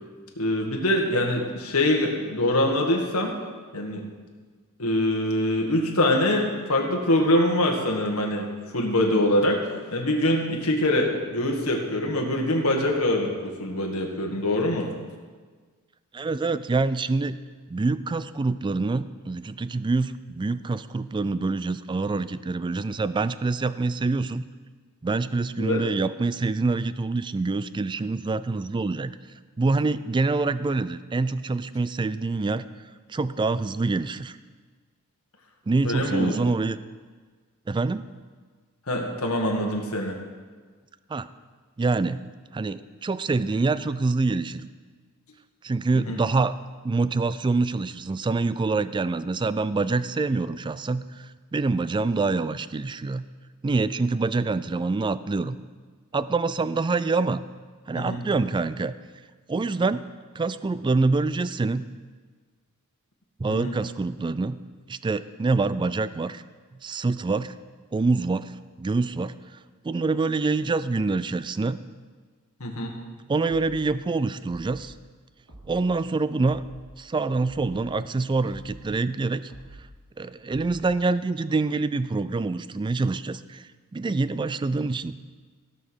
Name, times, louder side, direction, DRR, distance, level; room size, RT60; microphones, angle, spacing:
voice 1, 0.4-3.4 3.7-4.1 4.8-8.5 8.7-9.6 9.9-14.9 25.6-25.9 35.8-36.4 38.9-40.2 45.9-46.2 57.9-58.2 63.5-63.8 72.6-72.9, left 1 dB, 70° left, 1 dB, 1.8 m, -24 dB
voice 2, 16.1-17.4 17.7-24.4 25.0-29.1 29.6-32.6 33.1-34.4 35.7-36.8 37.7-38.0 41.1-41.3 41.8-42.2 42.5-44.7 45.6-46.5 46.8-51.3 51.5-53.3 53.6-55.6 56.1-57.4 57.9-58.9 59.5-60.1 60.4-61.9 63.4-64.6 64.9-66.4 66.8-67.5 67.9-68.5 68.8-69.3 69.8-71.8 73.3-74.9 75.7-76.6 77.0-79.5 80.2-83.6 83.9-85.2, right 3 dB, 20° right, 15 dB, 0.3 m, -26 dB
sound 1, 73.5-73.9 74.5-74.9 75.5-75.9 76.5-76.9 77.4-77.9 78.5-78.9 79.5-79.9 80.5-80.9, right 2 dB, 65° right, 3.1 m, -47 dB
16.5 x 5.7 x 6.3 m, 1.5 s
head